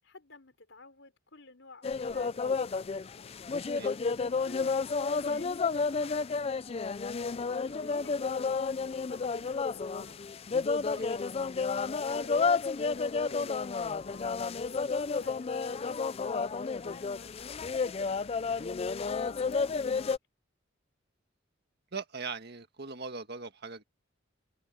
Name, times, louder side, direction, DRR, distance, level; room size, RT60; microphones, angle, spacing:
voice 1, 0.0-3.3 4.3-6.7 7.4-10.5 11.5-16.0 16.5-17.6, left 2 dB, 65° left, 5.3 m, -55 dB
sound 1, 1.8-20.2, left 4 dB, 30° left, 0.4 m, -31 dB
voice 2, 10.9-11.3 21.9-23.8, right 4 dB, 55° right, 1.8 m, -40 dB
head